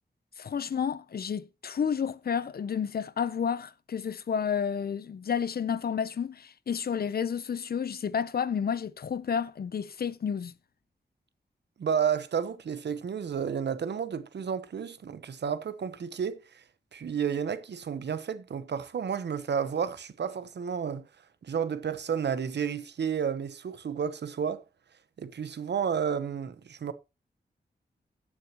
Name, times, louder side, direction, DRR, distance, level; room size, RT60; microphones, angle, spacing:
voice 1, 0.4-10.5, left 7 dB, 65° left, 0.6 m, -31 dB
voice 2, 11.8-16.6 16.9-21.1 21.4-24.6 25.2-26.9, right 7 dB, 80° right, 0.9 m, -31 dB
16.5 x 6.4 x 2.9 m
wide cardioid pair, 90°, 17 cm